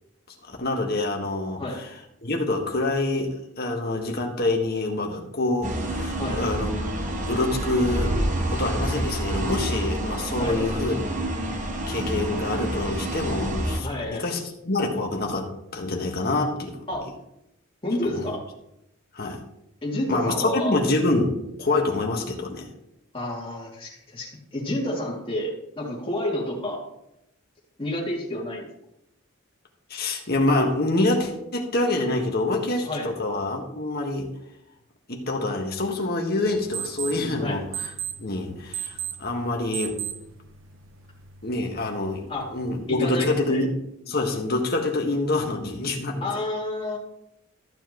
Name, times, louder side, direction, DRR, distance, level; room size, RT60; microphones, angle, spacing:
voice 1, 0.5-1.9 2.2-6.8 7.3-8.2 8.5-11.1 11.9-16.8 18.1-18.4 19.1-19.4 20.1-22.7 29.9-34.3 35.1-37.9 38.2-40.0 41.4-42.2 42.5-43.7 44.0-46.3, left 2 dB, 50° left, 1 dB, 1.6 m, -26 dB
sound 1, 5.6-13.8, right 1 dB, 40° right, 1.1 m, -28 dB
voice 2, 13.8-14.2 16.9-17.1 17.8-18.4 19.8-20.7 23.1-26.8 27.8-28.7 32.8-33.1 37.4-37.6 42.3-42.5 42.9-43.6 46.2-47.0, left 1 dB, 25° left, -4 dB, 2.6 m, -29 dB
sound 2, 36.5-43.0, right 8 dB, 70° right, 0.8 m, -37 dB
14.0 x 7.4 x 3.1 m, 0.82 s
head